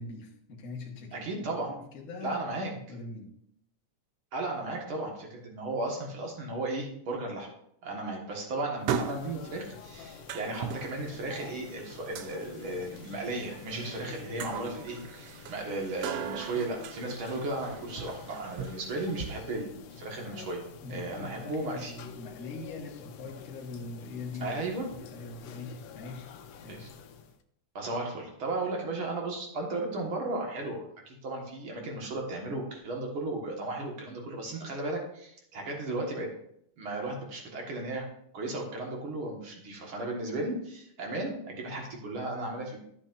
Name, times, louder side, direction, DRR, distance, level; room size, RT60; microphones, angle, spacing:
voice 1, 0.0-2.4 2.7-3.3 20.8-24.6 24.9-26.3 26.6-26.8, left 3 dB, 45° left, -1 dB, 1.2 m, -42 dB
voice 2, 1.1-1.7 2.2-2.7 4.3-7.5 7.8-20.6 20.9-21.9 24.4-24.9 26.7-26.9 27.8-36.3 36.8-38.0 38.3-42.8, right 2 dB, 50° right, 0 dB, 2.0 m, -35 dB
sound 1, 8.8-27.4, left 8 dB, 85° left, 2.2 m, -48 dB
sound 2, 8.9-19.4, right 7 dB, 85° right, 1.4 m, -39 dB
12.5 x 7.5 x 2.5 m, 0.72 s
omnidirectional pair, 3.6 m